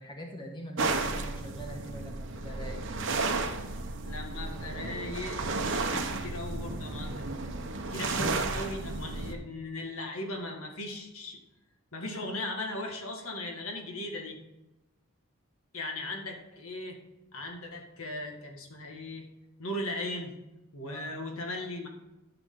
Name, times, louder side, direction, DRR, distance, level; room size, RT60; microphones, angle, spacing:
voice 1, 0.0-2.8 20.8-21.2, equal, 20° left, 1 dB, 1.3 m, -43 dB
sound 1, 0.8-9.3, right 3 dB, 55° right, 1.0 m, -33 dB
voice 2, 4.0-7.3 7.9-11.4 11.9-14.4 15.7-17.0 17.3-19.3 19.6-20.3 20.7-21.9, left 2 dB, 75° left, 2 dB, 1.8 m, -38 dB
12.0 x 6.8 x 3.8 m, 0.97 s
head